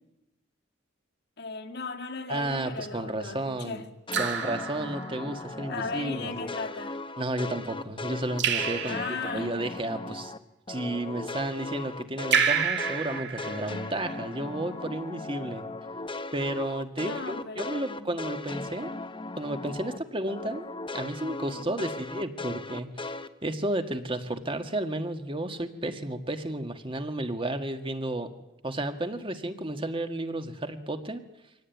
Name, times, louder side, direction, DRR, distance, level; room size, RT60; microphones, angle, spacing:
voice 1, 1.4-3.9 5.7-7.0 8.8-9.6 17.0-18.2 21.5-21.9, left 4 dB, 60° left, 2.1 m, -37 dB
voice 2, 2.3-3.8 4.2-6.3 7.2-9.0 9.3-10.3 10.7-15.7 16.3-18.9 19.4-20.6 20.9-23.1 23.4-28.3 28.6-31.2, right 1 dB, 25° right, 1.8 m, -32 dB
Raindrop / Drip, 2.3-2.8 4.1-5.5 8.4-9.5 12.3-14.0, right 7 dB, 65° right, 2.8 m, -29 dB
sound 1, 4.1-10.4 10.7-20.0 20.3-23.3, left 2 dB, 25° left, 1.1 m, -38 dB
25.0 x 18.0 x 9.3 m
head